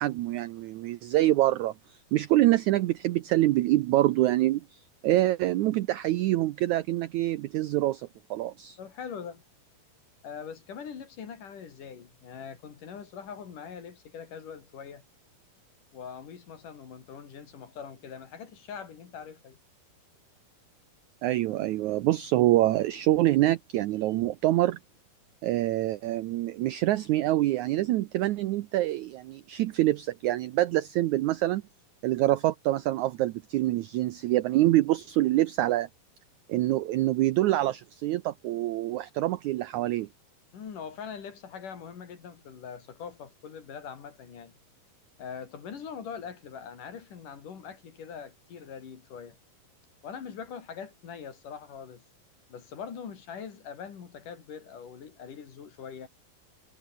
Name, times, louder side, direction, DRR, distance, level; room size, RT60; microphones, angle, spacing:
voice 1, 0.0-8.8 21.2-24.8 25.4-31.6 32.0-35.9 36.5-40.1, right 15 dB, 80° right, 1.7 m, -26 dB
voice 2, 8.8-9.4 10.2-15.0 15.9-19.6 40.5-44.5 45.2-49.4 50.0-52.0 52.5-56.1, left 7 dB, 60° left, 4.6 m, -42 dB
omnidirectional pair, 4.2 m